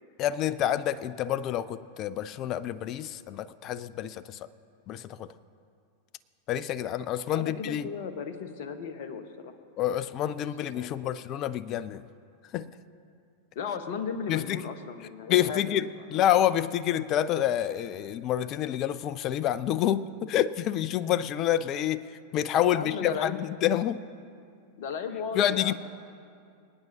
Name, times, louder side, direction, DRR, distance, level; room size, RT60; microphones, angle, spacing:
voice 1, 0.2-4.4 4.9-5.3 6.5-7.9 9.8-12.0 12.5-12.7 14.3-14.6 15.3-22.1 22.3-24.0 25.3-25.7, left 11 dB, 35° left, 17 dB, 0.4 m, -28 dB
voice 2, 7.3-9.6 10.4-11.2 13.5-15.6 16.1-16.3 22.6-23.4 24.8-25.7, left 6 dB, 50° left, 8 dB, 1.1 m, -36 dB
26.5 x 9.0 x 2.8 m, 2.4 s
figure-of-eight pair, 90°, 0 cm